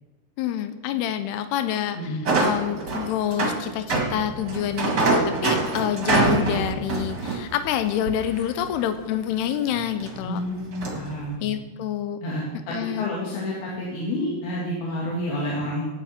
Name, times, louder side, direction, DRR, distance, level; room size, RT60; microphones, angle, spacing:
voice 1, 0.4-2.0 2.4-10.4 11.4-12.2 12.7-13.1, left 10 dB, 90° left, 10 dB, 2.7 m, -27 dB
voice 2, 1.9-2.3 10.2-11.5 12.2-15.8, left 1 dB, 70° left, -5 dB, 3.8 m, -29 dB
sound 1, 2.3-8.7 9.1-9.2 9.7-10.2 10.6-11.1, right 3 dB, 40° right, 1.7 m, -25 dB
17.0 x 9.2 x 4.3 m, 1.2 s
omnidirectional pair, 4.6 m